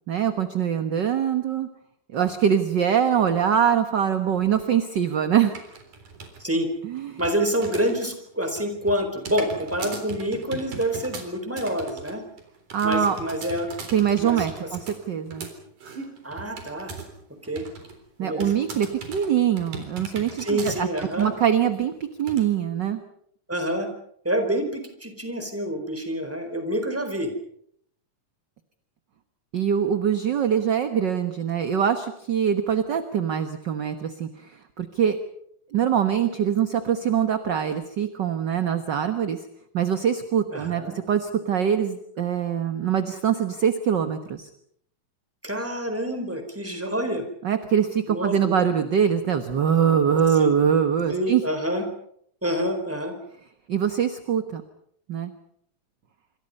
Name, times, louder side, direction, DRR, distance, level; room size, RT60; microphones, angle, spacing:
voice 1, 0.1-1.7 2.1-5.5 6.8-7.2 12.7-13.2 13.9-15.5 18.2-20.9 21.2-21.9 22.2-23.0 29.5-35.2 35.7-39.4 39.7-44.5 47.4-51.4 53.7-54.6 55.1-55.3, right 8 dB, 50° right, 9 dB, 1.5 m, -23 dB
sound 1, 5.5-6.4 6.7-8.1 8.4-17.2 17.4-18.0 18.4-21.4 21.7-21.8 22.3-22.4, right 4 dB, 90° right, 5.3 m, -39 dB
voice 2, 7.2-12.2 12.8-13.7 14.2-14.7 16.2-17.0 17.5-17.7 18.2-18.5 20.4-21.3 23.5-23.9 24.2-27.3 40.5-41.0 45.4-47.3 48.1-48.6 50.4-50.5 51.1-51.9 52.4-53.1, equal, 5° right, 6 dB, 4.2 m, -27 dB
27.0 x 26.5 x 5.5 m, 0.68 s
omnidirectional pair, 3.5 m